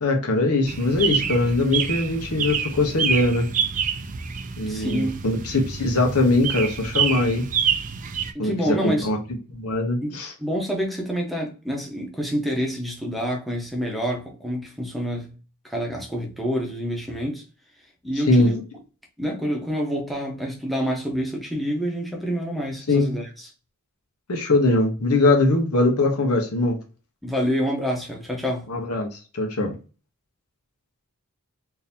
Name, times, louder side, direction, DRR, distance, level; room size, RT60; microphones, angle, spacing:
voice 1, 0.0-3.5 4.6-7.4 8.4-9.2 9.5-10.3 18.3-18.5 22.9-23.2 24.3-26.8 28.7-29.7, left 2 dB, 85° left, 0.9 m, -21 dB
sound 1, 0.7-8.3, right 7 dB, 35° right, 0.4 m, -27 dB
voice 2, 4.6-5.2 8.3-9.1 10.0-15.3 15.6-17.4 18.0-18.6 19.2-23.5 27.2-28.7, equal, ahead, 0.9 m, -27 dB
3.8 x 2.7 x 2.7 m
head